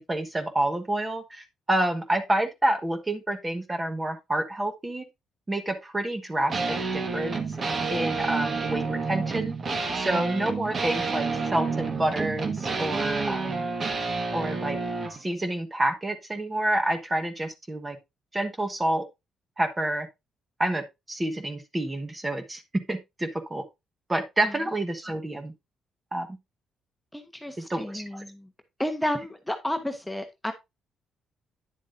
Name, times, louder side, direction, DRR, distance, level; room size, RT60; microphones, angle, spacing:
voice 1, 0.0-5.0 5.5-7.4 7.9-9.6 9.9-13.7 14.3-14.8 15.2-18.0 18.3-19.0 19.6-20.1 20.6-23.6 24.1-25.5 26.1-26.3 27.7-28.2, right 1 dB, 20° right, 1.3 m, -28 dB
sound 1, 6.5-15.2, right 4 dB, 40° right, 1.5 m, -29 dB
voice 2, 27.1-28.5 28.8-30.5, left 1 dB, 5° left, 1.1 m, -31 dB
9.7 x 7.2 x 2.7 m
cardioid pair, 90°, 0 cm